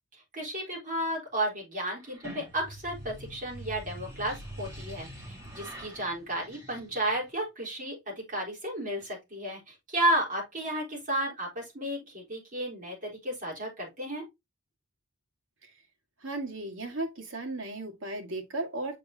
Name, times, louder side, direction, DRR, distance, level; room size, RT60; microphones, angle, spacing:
voice 1, 0.3-14.2, right 1 dB, 40° right, 4.0 m, -33 dB
sound 1, 2.0-7.3, right 1 dB, 15° right, 3.0 m, -44 dB
voice 2, 16.2-19.0, right 2 dB, 75° right, 1.8 m, -35 dB
7.4 x 5.2 x 2.8 m
head